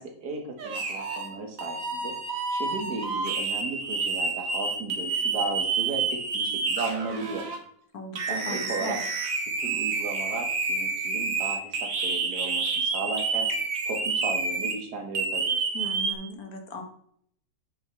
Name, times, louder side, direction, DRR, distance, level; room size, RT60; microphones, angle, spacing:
voice 1, 0.0-2.1 2.5-7.5 8.3-9.0 9.5-13.5 13.8-15.5, right 3 dB, 85° right, 3 dB, 2.1 m, -35 dB
sound 1, 0.6-1.3 1.6-7.6 8.1-14.8 15.1-16.1, right 4 dB, 60° right, 1.6 m, -29 dB
voice 2, 7.9-9.0 15.7-16.8, left 2 dB, 70° left, 5 dB, 1.8 m, -38 dB
9.6 x 6.8 x 3.2 m, 0.65 s
omnidirectional pair, 1.7 m